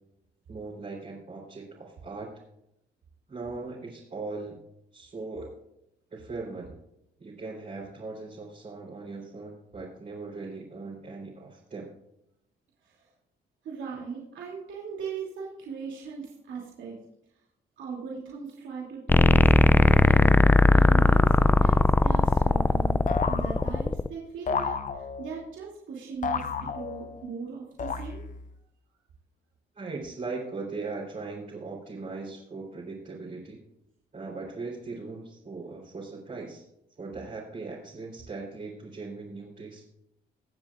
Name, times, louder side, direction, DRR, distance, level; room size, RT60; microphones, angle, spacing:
voice 1, 0.5-2.3 3.3-4.6 4.9-5.5 6.1-6.7 7.2-11.9 29.8-33.6 34.1-36.6 37.0-39.8, right 3 dB, 40° right, -6 dB, 3.6 m, -39 dB
voice 2, 13.6-17.0 17.8-23.0 23.2-28.2, right 5 dB, 75° right, -4 dB, 2.7 m, -39 dB
sound 1, 19.1-24.1, left 2 dB, 10° left, 0.3 m, -19 dB
sound 2, 23.1-24.0 24.5-25.4 26.2-27.2 27.8-28.5, left 5 dB, 40° left, 0.8 m, -32 dB
22.0 x 7.5 x 2.5 m, 0.81 s
cardioid pair, 90°, 20 cm